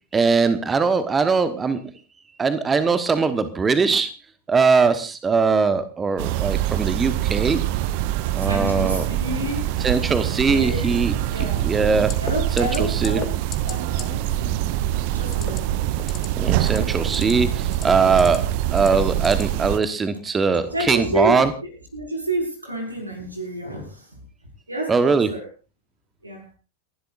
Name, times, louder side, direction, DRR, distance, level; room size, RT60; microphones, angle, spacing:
voice 1, 0.1-1.8 2.4-4.1 4.5-7.6 8.3-9.0 9.8-11.1 11.6-12.1 12.6-13.2 16.4-18.4 18.7-21.5 24.9-25.3, right 4 dB, 15° right, 11 dB, 1.1 m, -20 dB
sound 1, 6.2-19.8, right 13 dB, 45° right, 0.7 m, -24 dB
voice 2, 8.2-9.8 10.5-11.7 12.2-13.4 13.6-15.8 20.6-24.2 24.7-25.5 26.2-26.5, right 1 dB, 85° right, 1 dB, 5.3 m, -30 dB
sound 2, 12.1-12.3 12.6-12.8 13.0-13.3 13.5-13.7 14.0-14.1 15.3-15.6 16.0-16.3 16.6-17.3 17.7-18.4 18.8-19.4 19.8-20.0, left 9 dB, 25° left, 1.9 m, -34 dB
30.0 x 12.0 x 2.5 m, 0.33 s
figure-of-eight pair, 90°, 0 cm